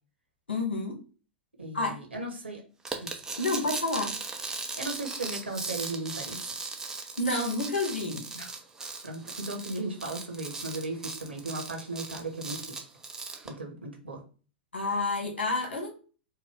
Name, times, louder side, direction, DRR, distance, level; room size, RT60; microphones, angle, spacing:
voice 1, 0.5-1.0 1.7-2.0 3.4-4.1 7.2-8.2 14.7-15.9, left 2 dB, 75° left, 0 dB, 1.7 m, -29 dB
voice 2, 1.6-2.6 3.0-3.1 4.8-6.4 8.3-8.6 9.0-12.9 13.4-14.2, right 2 dB, 85° right, 2 dB, 1.4 m, -36 dB
sound 1, 2.9-13.5, right 3 dB, 10° right, 0.7 m, -38 dB
4.6 x 2.3 x 3.5 m, 0.36 s
figure-of-eight pair, 100°, 6 cm